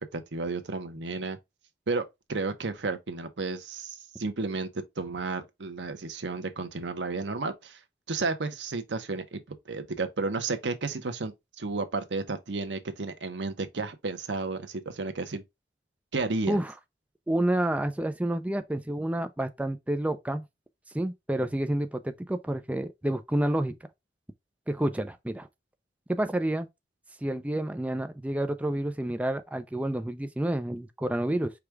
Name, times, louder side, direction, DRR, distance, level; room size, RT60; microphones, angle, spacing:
voice 1, 0.0-1.4 1.9-7.8 8.1-15.4 16.1-16.6, right 3 dB, 90° right, 0.8 m, -32 dB
voice 2, 17.3-20.4 20.9-23.8 24.7-25.5 26.1-26.7 27.2-31.5, right 1 dB, 10° right, 0.4 m, -29 dB
4.9 x 2.3 x 4.4 m
head